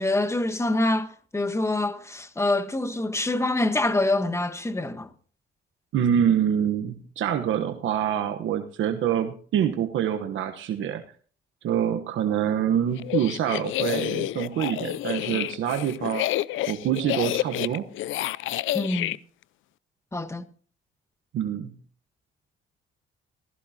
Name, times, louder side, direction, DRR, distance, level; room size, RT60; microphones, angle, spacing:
voice 1, 0.0-5.1 18.7-19.2 20.1-20.4, left 2 dB, 15° left, 1.3 m, -25 dB
voice 2, 5.9-11.0 11.6-16.3 16.7-17.9 21.3-21.8, right 9 dB, 75° right, 1.1 m, -26 dB
sound 1, 13.0-19.2, left 15 dB, 80° left, 0.5 m, -29 dB
15.5 x 14.0 x 2.8 m
cardioid pair, 90°, 20 cm